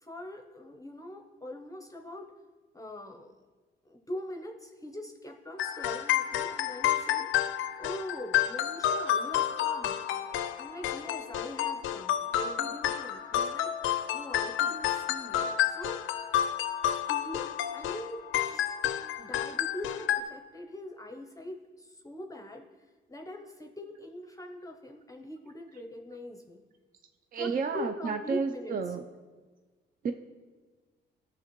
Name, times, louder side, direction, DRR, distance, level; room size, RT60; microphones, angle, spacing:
voice 1, 0.0-2.3 2.7-3.3 3.8-10.0 10.5-13.7 14.1-16.0 17.1-18.8 19.2-22.7 23.1-26.6 27.3-28.8, left 1 dB, 15° left, 4 dB, 0.6 m, -42 dB
sound 1, 5.6-20.2, left 11 dB, 80° left, 0.4 m, -30 dB
voice 2, 27.3-29.0 30.0-30.1, right 5 dB, 45° right, 7 dB, 0.5 m, -31 dB
13.0 x 5.9 x 3.0 m, 1.4 s
cardioid pair, 90°, 20 cm